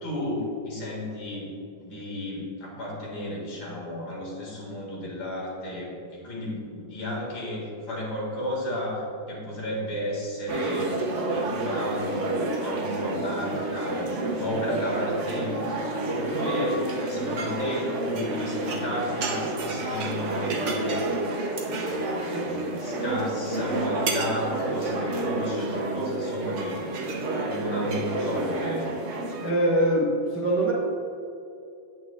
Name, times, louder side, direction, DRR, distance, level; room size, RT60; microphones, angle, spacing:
voice 1, 0.0-1.5 1.8-9.0 9.3-15.6 16.1-21.0 21.7-28.9, left 1 dB, 80° left, -4 dB, 2.6 m, -33 dB
sound 1, 10.5-29.5, right 2 dB, 55° right, 0.8 m, -29 dB
voice 2, 29.4-30.7, right 1 dB, 15° right, -4 dB, 0.5 m, -23 dB
8.9 x 8.7 x 2.3 m, 2.6 s
omnidirectional pair, 2.1 m